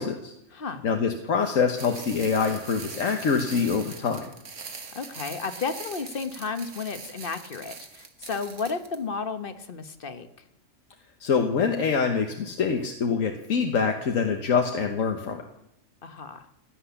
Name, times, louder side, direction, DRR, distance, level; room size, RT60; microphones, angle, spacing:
voice 1, 0.0-0.3 0.8-4.2 11.2-15.4, left 5 dB, 85° left, 5 dB, 1.5 m, -25 dB
voice 2, 0.5-0.8 4.9-10.3 16.0-16.5, left 5 dB, 45° left, 10 dB, 1.2 m, -33 dB
sound 1, 1.8-9.0, right 5 dB, 70° right, 1.9 m, -42 dB
16.5 x 10.0 x 7.1 m, 0.80 s
omnidirectional pair, 1.3 m